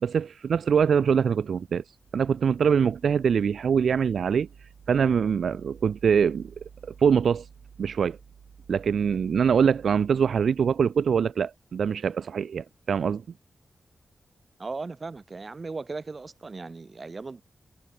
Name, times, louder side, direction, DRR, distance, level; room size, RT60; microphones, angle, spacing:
voice 1, 0.0-1.8 2.1-4.5 4.9-6.5 7.0-7.5 7.8-8.2 8.7-13.2, right 7 dB, 80° right, 0.5 m, -23 dB
voice 2, 14.6-17.4, right 3 dB, 35° right, 5.7 m, -37 dB
wide cardioid pair, 125°, 0 cm